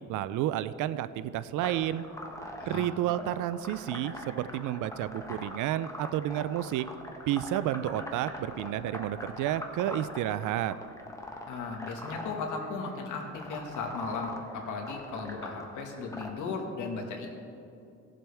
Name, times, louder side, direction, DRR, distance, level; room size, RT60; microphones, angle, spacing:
voice 1, 0.1-2.0 2.6-6.9 7.3-10.7, right 12 dB, 85° right, 14 dB, 0.5 m, -31 dB
sound 1, 1.6-16.3, left 1 dB, 10° left, 1.2 m, -43 dB
voice 2, 2.6-2.9 11.5-17.3, left 4 dB, 80° left, 2 dB, 1.7 m, -36 dB
17.5 x 7.5 x 3.5 m, 2.7 s
cardioid pair, 90°, 30 cm